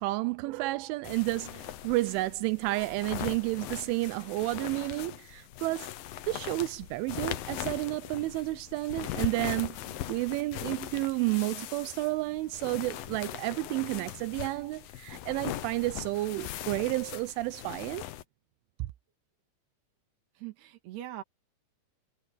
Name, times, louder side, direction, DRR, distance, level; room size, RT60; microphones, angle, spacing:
voice 1, 0.0-5.9 6.3-18.1 18.8-18.9, right 20 dB, 90° right, 3.2 m, -31 dB
sound 1, 1.0-18.2, left 13 dB, 80° left, 2.1 m, -40 dB
voice 2, 20.4-21.2, right 13 dB, 65° right, 3.7 m, -41 dB
omnidirectional pair, 5.4 m